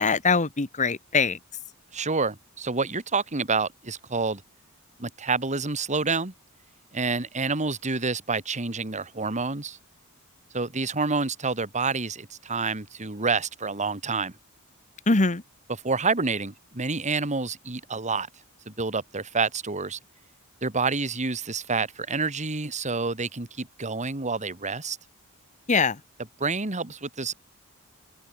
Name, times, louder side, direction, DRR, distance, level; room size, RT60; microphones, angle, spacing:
voice 1, 0.0-1.4 15.1-15.4 25.7-26.0, left 4 dB, 35° left, 1.3 m, -22 dB
voice 2, 1.9-4.4 5.0-6.3 6.9-9.8 10.5-14.3 15.7-18.3 18.7-20.0 20.6-25.0 26.4-27.3, right 4 dB, 35° right, 2.1 m, -28 dB
open air
head